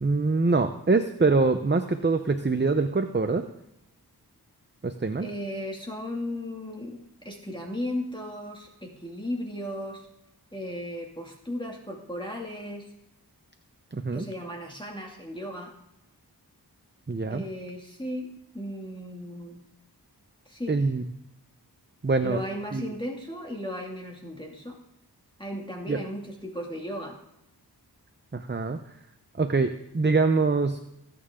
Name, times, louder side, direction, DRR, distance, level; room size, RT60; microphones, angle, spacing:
voice 1, 0.0-3.5 4.8-5.3 13.9-14.2 17.1-17.4 20.7-21.0 22.0-22.4 22.7-22.9 25.9-26.0 28.3-28.8 29.4-30.8, right 3 dB, 25° right, 8 dB, 0.8 m, -24 dB
voice 2, 5.2-10.1 10.5-12.9 14.1-15.7 17.3-18.3 18.5-19.6 20.5-20.8 22.2-24.8 25.4-27.2, left 1 dB, 10° left, 0 dB, 2.4 m, -35 dB
20.0 x 8.9 x 3.7 m, 0.85 s
wide cardioid pair, 45°, 39 cm